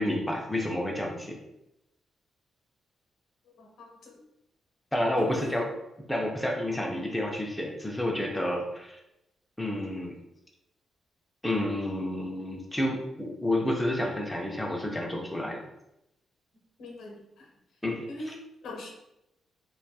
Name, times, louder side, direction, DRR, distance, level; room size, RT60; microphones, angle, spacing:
voice 1, 0.0-1.4 4.9-5.7 6.1-9.0 9.6-10.2 11.4-15.6 17.8-18.4, left 1 dB, 5° left, -1 dB, 0.3 m, -30 dB
voice 2, 3.6-4.1 5.2-5.5 16.8-17.4 18.1-18.3 18.6-18.9, left 2 dB, 80° left, 0 dB, 0.6 m, -42 dB
2.7 x 2.2 x 2.2 m, 0.87 s
cardioid pair, 150°, 0 cm